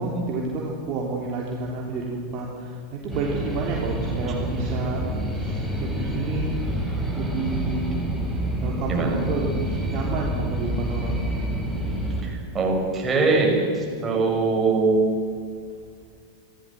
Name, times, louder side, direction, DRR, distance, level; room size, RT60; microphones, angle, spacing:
voice 1, 0.0-5.0 5.3-6.6 7.1-8.1 8.6-11.2, right 3 dB, 40° right, -2 dB, 3.4 m, -30 dB
sound 1, 3.1-12.2, right 1 dB, ahead, 7.3 m, -28 dB
voice 2, 12.2-15.0, right 3 dB, 20° right, 0 dB, 6.0 m, -22 dB
24.5 x 16.5 x 7.7 m, 2.1 s
figure-of-eight pair, 90°, 0 cm